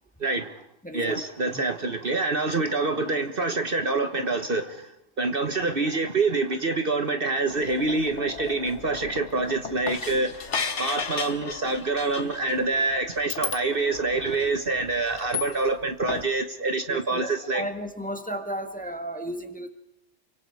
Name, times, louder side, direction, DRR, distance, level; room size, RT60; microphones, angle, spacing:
voice 1, 0.2-0.6 0.9-4.9 5.2-10.4 10.8-17.6, right 3 dB, 45° right, 1.5 m, -26 dB
voice 2, 0.8-1.2 1.5-1.6 16.9-19.7, equal, 5° left, 1.9 m, -34 dB
sound 1, 7.5-15.8 16.1-16.3, left 6 dB, 65° left, 1.6 m, -35 dB
29.0 x 25.0 x 4.8 m
omnidirectional pair, 1.3 m